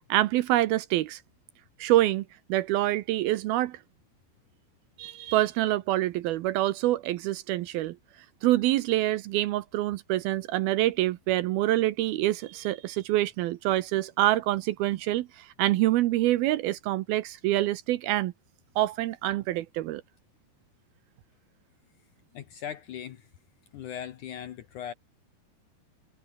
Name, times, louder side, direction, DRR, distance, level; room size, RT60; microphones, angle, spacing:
voice 1, 0.1-1.2 1.8-2.2 2.5-3.8 5.0-8.0 8.4-18.3 18.8-20.0, right 15 dB, 75° right, 2.4 m, -26 dB
voice 2, 22.3-23.3 23.7-24.9, left 9 dB, 65° left, 2.1 m, -39 dB
omnidirectional pair, 4.8 m